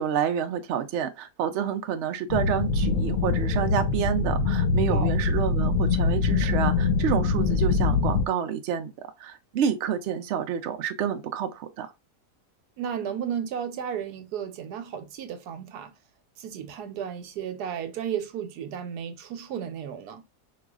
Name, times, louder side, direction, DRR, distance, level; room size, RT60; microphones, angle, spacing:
voice 1, 0.0-11.9, right 8 dB, 65° right, 0.7 m, -29 dB
sound 1, 2.3-8.2, left 4 dB, 75° left, 1.0 m, -24 dB
voice 2, 12.8-15.9 16.4-20.2, right 8 dB, 85° right, 1.2 m, -33 dB
4.6 x 2.4 x 2.3 m
omnidirectional pair, 1.7 m